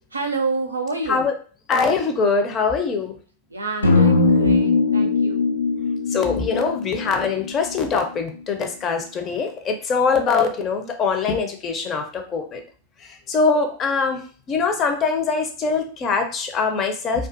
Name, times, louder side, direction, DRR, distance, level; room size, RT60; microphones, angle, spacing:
voice 1, 0.1-1.3 3.5-5.5, right 3 dB, 85° right, 3 dB, 0.4 m, -28 dB
voice 2, 1.7-3.1 6.1-12.6 13.3-14.2 14.5-17.3, left 5 dB, 30° left, 5 dB, 0.5 m, -22 dB
sound 1, 3.8-8.0, left 3 dB, 85° left, 0.3 m, -20 dB
2.3 x 2.3 x 2.5 m, 0.40 s
figure-of-eight pair, 90°, 0 cm